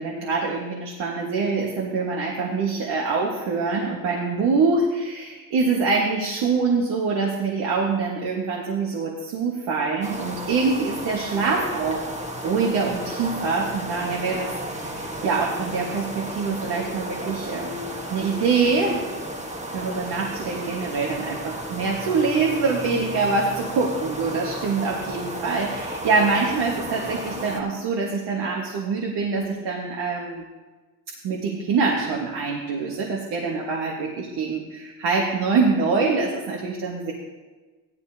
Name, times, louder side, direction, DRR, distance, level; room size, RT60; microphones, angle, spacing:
voice 1, 0.0-12.0 12.4-19.0 19.7-30.4 31.2-37.1, right 4 dB, 75° right, -2 dB, 1.5 m, -25 dB
sound 1, 10.0-27.6, right 1 dB, 15° right, 1.3 m, -33 dB
15.5 x 11.5 x 2.8 m, 1.3 s
cardioid pair, 130°, 41 cm